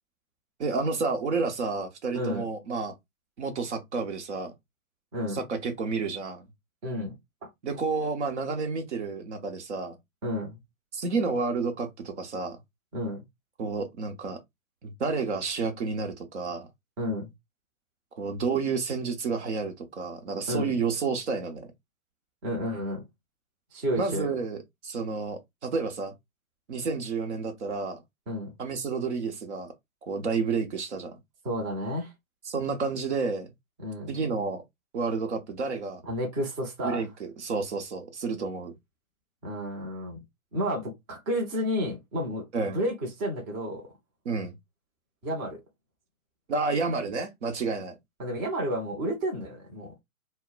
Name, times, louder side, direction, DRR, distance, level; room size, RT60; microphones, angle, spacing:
voice 1, 0.6-2.9 3.4-4.5 5.3-6.5 7.6-10.0 10.9-12.6 13.6-14.4 14.8-16.7 18.1-21.7 24.0-24.6 24.8-26.1 26.7-28.0 28.6-29.7 30.0-31.2 32.5-33.5 34.1-34.6 34.9-36.0 36.8-38.7 42.5-42.8 44.2-44.5 46.5-47.9, right 4 dB, 55° right, 0.8 m, -30 dB
voice 2, 6.8-7.2 7.4-7.5 10.2-10.6 12.9-13.2 17.0-17.3 20.5-20.7 22.4-23.0 23.7-24.3 28.3-28.5 31.4-32.1 33.8-34.1 36.0-37.0 39.4-40.2 40.5-42.4 42.7-43.8 45.2-45.6 48.2-49.9, equal, 20° right, 0.6 m, -31 dB
2.1 x 2.1 x 3.7 m
figure-of-eight pair, 130°, 42 cm